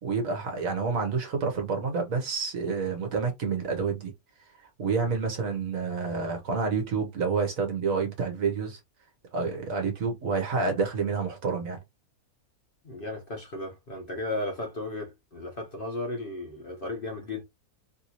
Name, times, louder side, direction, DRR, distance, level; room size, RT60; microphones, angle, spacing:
voice 1, 0.0-4.1 4.8-8.8 9.3-11.8, right 5 dB, 60° right, 1.3 m, -28 dB
voice 2, 12.8-17.4, left 2 dB, 40° left, 0.9 m, -35 dB
3.3 x 2.6 x 2.9 m
omnidirectional pair, 1.7 m